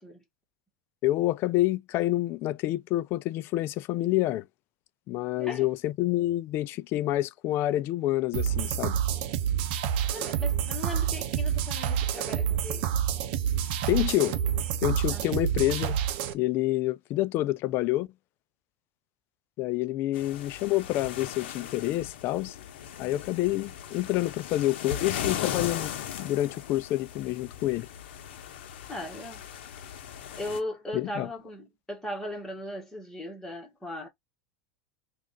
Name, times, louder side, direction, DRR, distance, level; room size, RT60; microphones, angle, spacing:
voice 1, 1.0-4.4 5.1-9.0 13.9-14.3 14.8-16.0 16.3-18.1 19.6-22.5 23.0-27.9 30.9-31.3, left 16 dB, 40° left, 0.3 m, -28 dB
voice 2, 5.4-5.7 10.1-12.9 15.1-15.3 28.9-29.4 30.4-34.1, left 1 dB, 5° left, 1.5 m, -38 dB
sound 1, 8.3-16.3, right 9 dB, 65° right, 0.6 m, -28 dB
sound 2, 20.1-30.6, left 10 dB, 80° left, 0.8 m, -38 dB
3.6 x 2.5 x 3.6 m
supercardioid pair, 140°, 6 cm